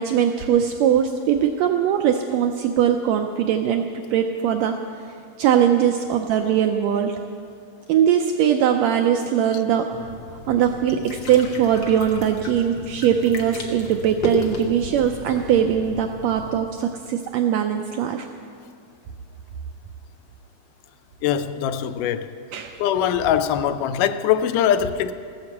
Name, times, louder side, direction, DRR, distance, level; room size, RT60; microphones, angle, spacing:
voice 1, 0.0-4.8 5.4-7.1 7.9-10.1 10.5-18.3 22.5-22.8, right 9 dB, 90° right, 5 dB, 1.5 m, -21 dB
sound 1, 9.9-16.6, left 1 dB, 60° left, 1.2 m, -33 dB
voice 2, 21.2-22.3 22.8-25.1, left 9 dB, 80° left, 11 dB, 2.1 m, -22 dB
15.0 x 9.5 x 7.2 m, 2.4 s
omnidirectional pair, 3.7 m